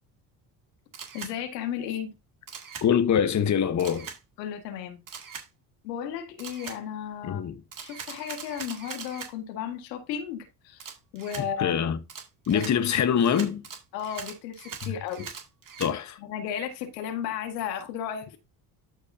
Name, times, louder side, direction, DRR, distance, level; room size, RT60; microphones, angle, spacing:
Camera, 0.9-1.3 2.5-2.9 3.8-4.2 5.1-5.5 6.4-6.8 7.7-9.3 10.8-11.5 12.1-15.9, right 6 dB, 40° right, 2.4 m, -41 dB
voice 1, 1.1-2.1 4.4-5.0 5.8-7.5 7.8-11.8 12.5-12.7 13.9-15.3 16.2-18.4, left 9 dB, 85° left, 1.8 m, -34 dB
voice 2, 2.8-4.1 7.2-7.6 11.6-12.0 12.5-13.7 14.8-14.9 15.8-16.2, left 8 dB, 35° left, 1.1 m, -24 dB
13.0 x 4.8 x 2.7 m
hypercardioid pair, 65°, 48 cm